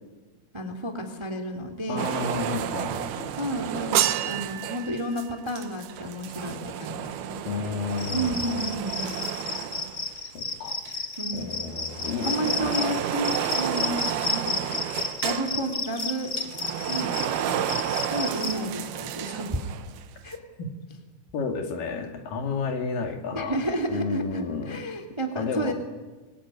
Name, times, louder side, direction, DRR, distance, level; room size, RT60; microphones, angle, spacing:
voice 1, 0.5-2.1 3.4-7.5 8.1-9.1 11.2-11.5 12.2-14.6 15.2-16.3 16.9-17.8 18.1-19.7 20.2-20.4 23.3-25.7, right 1 dB, 10° right, 6 dB, 1.9 m, -31 dB
voice 2, 1.9-3.4 7.5-8.4 10.3-10.8 11.3-13.0 20.6-20.7 21.3-23.6 23.9-24.8 25.4-25.7, left 5 dB, 65° left, 4 dB, 3.8 m, -31 dB
sound 1, 2.0-10.6 10.9-20.0 20.3-20.4, right 11 dB, 90° right, 3.0 m, -31 dB
Cricket, 7.9-18.5, left 4 dB, 30° left, 1.6 m, -32 dB
25.5 x 21.0 x 9.7 m, 1.3 s
omnidirectional pair, 4.3 m